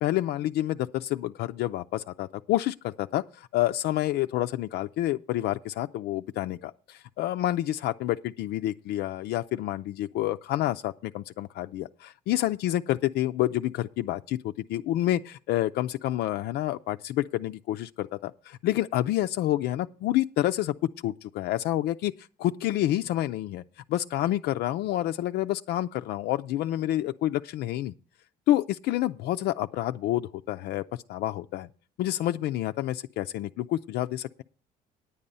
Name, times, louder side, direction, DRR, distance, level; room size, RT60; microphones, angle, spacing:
voice 1, 0.0-20.7 21.0-23.6 23.9-27.9 28.5-31.7 32.0-34.4, left 14 dB, 75° left, 0.4 m, -28 dB
9.9 x 8.7 x 5.4 m
cardioid pair, 110°, 17 cm